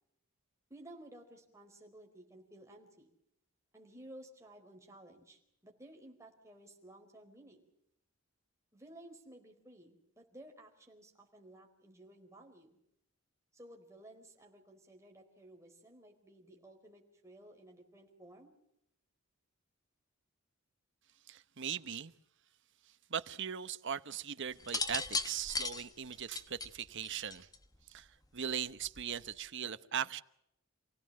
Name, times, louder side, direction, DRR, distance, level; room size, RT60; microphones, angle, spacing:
voice 1, 0.7-3.1 3.7-7.7 8.7-12.8 13.5-18.5, right 1 dB, 15° right, 4.4 m, -55 dB
voice 2, 21.3-22.1 23.1-27.5 27.9-28.1 28.3-30.2, right 8 dB, 60° right, 0.9 m, -39 dB
sound 1, 24.6-27.8 28.8-29.2, left 3 dB, 15° left, 1.2 m, -37 dB
28.5 x 17.0 x 7.7 m
head